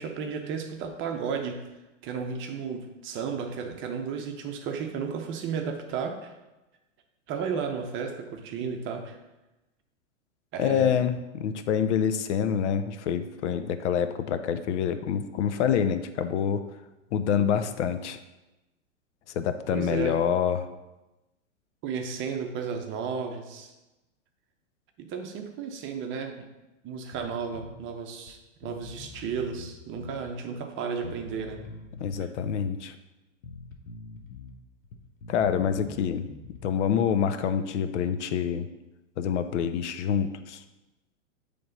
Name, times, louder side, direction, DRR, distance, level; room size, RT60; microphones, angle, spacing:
voice 1, 0.0-1.7 2.0-6.3 7.3-9.2 10.5-10.9 19.7-20.2 21.8-23.7 25.0-26.5 26.8-31.6 32.2-32.3, right 6 dB, 30° right, 5 dB, 0.8 m, -33 dB
voice 2, 10.6-16.6 17.1-18.2 19.4-20.7 32.0-33.0 35.3-36.3 36.6-38.7 39.2-40.6, left 8 dB, 65° left, 10 dB, 0.6 m, -26 dB
Bass guitar, 27.1-27.8 28.3-28.4 28.6-30.2 31.0-32.6 33.4-34.5 34.8-36.7, left 4 dB, 90° left, 0.9 m, -44 dB
8.5 x 3.4 x 3.9 m, 1.0 s
hypercardioid pair, 115°, 38 cm